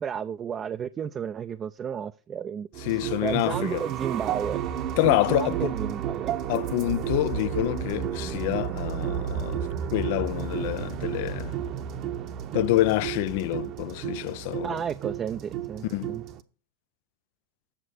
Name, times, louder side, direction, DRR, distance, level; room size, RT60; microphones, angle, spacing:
voice 1, 0.0-4.6 5.3-6.3 14.6-16.2, right 8 dB, 25° right, 0.4 m, -32 dB
sound 1, 2.7-16.4, right 9 dB, 45° right, 0.9 m, -32 dB
voice 2, 2.8-3.8 5.0-5.7 6.5-9.7 9.9-11.5 12.5-14.8 15.9-16.1, left 17 dB, 60° left, 0.4 m, -27 dB
8.1 x 6.6 x 6.3 m
hypercardioid pair, 110°, 0 cm